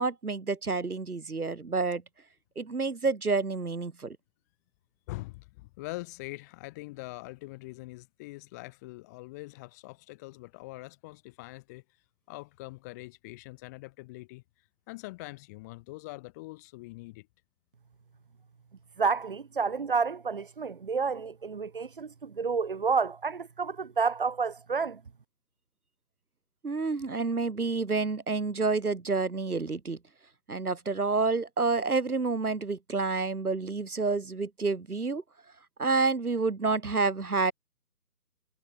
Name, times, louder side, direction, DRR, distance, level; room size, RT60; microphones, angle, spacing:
voice 1, 0.0-2.0 2.6-4.2 26.6-30.0 30.5-35.2 35.8-37.5, right 4 dB, 60° right, 3.7 m, -29 dB
voice 2, 5.1-11.8 12.3-14.4 14.9-17.3, left 22 dB, 10° left, 5.6 m, -43 dB
voice 3, 19.0-25.0, right 5 dB, 30° right, 3.9 m, -30 dB
figure-of-eight pair, 170°, 49 cm